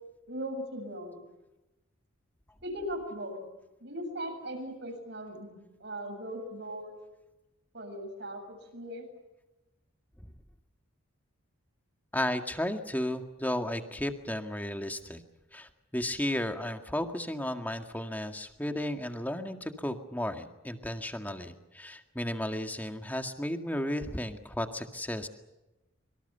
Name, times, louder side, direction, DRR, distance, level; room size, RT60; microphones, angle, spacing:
voice 1, 0.3-1.3 2.6-3.5 3.8-7.0 7.7-9.1, equal, 55° right, 5 dB, 7.3 m, -39 dB
voice 2, 12.1-15.2 15.5-25.3, left 1 dB, 10° left, 5 dB, 1.9 m, -34 dB
26.0 x 25.0 x 6.9 m, 1.0 s
head